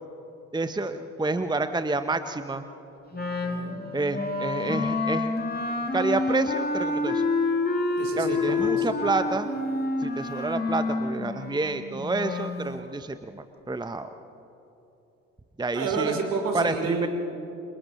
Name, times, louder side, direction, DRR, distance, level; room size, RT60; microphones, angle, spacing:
voice 1, 0.5-2.6 3.9-5.3 5.9-7.2 8.2-9.5 10.0-14.1 15.6-16.2 16.5-17.1, right 3 dB, 10° right, 9 dB, 1.0 m, -29 dB
Wind instrument woodwind instrument, 3.1-12.6, left 3 dB, 25° left, 2.7 m, -28 dB
voice 2, 3.1-3.8 8.0-8.9 15.7-17.1, right 4 dB, 60° right, 1 dB, 4.0 m, -30 dB
30.0 x 27.0 x 3.2 m, 2.9 s
hypercardioid pair, 45°, 37 cm